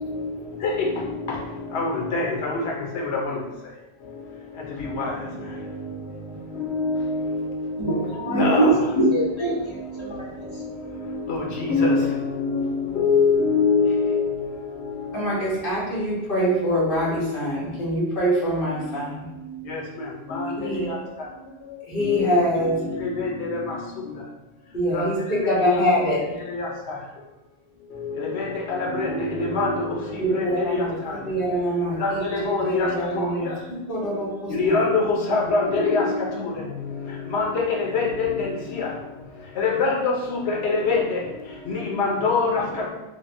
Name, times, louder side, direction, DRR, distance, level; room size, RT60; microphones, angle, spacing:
voice 1, 1.7-2.3 6.7-7.3 8.4-8.6 11.7-12.1 12.5-12.7 13.0-14.2 23.5-23.6 24.9-25.0 25.6-25.7 29.0-29.1 29.4-29.7 30.3-30.4 30.7-30.8 32.0-32.1 32.5-32.9 34.6-34.9 35.3-36.0 37.3-37.4 37.9-38.3 39.6-39.9 40.6-41.0 42.0-42.5, left 4 dB, 80° left, -1 dB, 1.0 m, -21 dB
voice 2, 7.8-10.5, right 1 dB, 35° left, -5 dB, 0.6 m, -23 dB
voice 3, 15.1-19.3 20.6-21.0 21.9-22.9 24.7-26.4 30.2-30.9 31.3-34.7, equal, 60° left, -7 dB, 1.2 m, -24 dB
3.3 x 2.1 x 2.5 m, 1.0 s
omnidirectional pair, 1.1 m